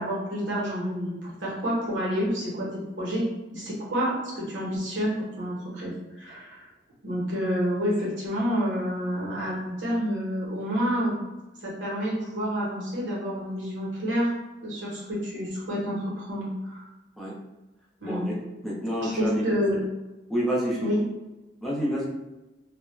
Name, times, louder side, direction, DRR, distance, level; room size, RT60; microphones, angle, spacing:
voice 1, 0.0-2.7 3.0-3.2 3.5-6.7 7.0-11.1 11.6-14.3 14.6-16.8 18.0-18.4 19.0-19.9 20.8-21.0, equal, 85° right, -6 dB, 1.0 m, -28 dB
voice 2, 18.6-19.4 20.3-20.8 21.6-22.1, equal, ahead, -6 dB, 0.5 m, -28 dB
2.4 x 2.1 x 3.1 m, 1.1 s
head